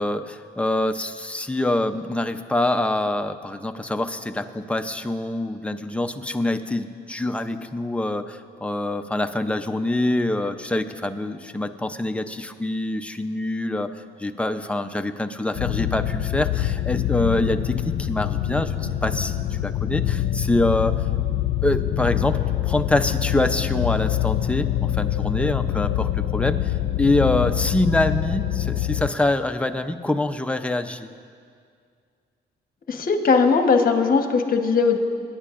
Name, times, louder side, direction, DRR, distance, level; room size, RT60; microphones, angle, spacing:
voice 1, 0.0-13.9 14.2-21.0 21.6-31.1, left 1 dB, 5° left, 6 dB, 0.6 m, -25 dB
sound 1, 15.5-29.1, left 12 dB, 80° left, 0.6 m, -25 dB
voice 2, 32.9-35.0, left 5 dB, 45° left, 5 dB, 1.1 m, -19 dB
23.5 x 10.5 x 2.5 m, 2.2 s
cardioid pair, 90°, 20 cm